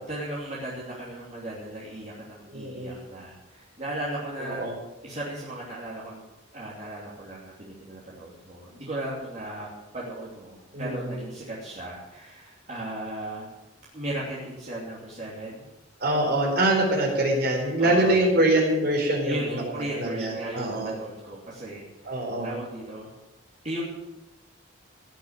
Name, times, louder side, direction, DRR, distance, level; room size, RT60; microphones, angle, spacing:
voice 1, 0.0-4.7 5.0-6.2 6.5-9.7 9.9-13.5 13.9-15.7 17.8-18.2 19.2-23.1 23.6-23.8, right 1 dB, 35° right, -7 dB, 3.0 m, -36 dB
voice 2, 2.5-2.9 4.6-4.7 10.7-11.2 16.0-19.6 19.9-20.9 22.0-22.5, right 1 dB, 50° right, -1 dB, 4.6 m, -24 dB
17.5 x 6.5 x 8.8 m, 0.96 s
head